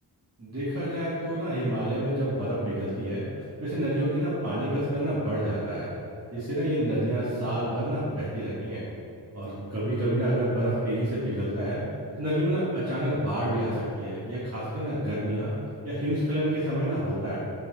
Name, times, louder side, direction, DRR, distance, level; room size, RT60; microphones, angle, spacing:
voice 1, 0.4-3.2 3.6-5.9 6.3-8.9 9.3-11.8 12.2-15.5 15.8-17.4, right 1 dB, 35° right, -11 dB, 1.9 m, -28 dB
7.2 x 4.9 x 6.3 m, 2.9 s
wide cardioid pair, 125°, 42 cm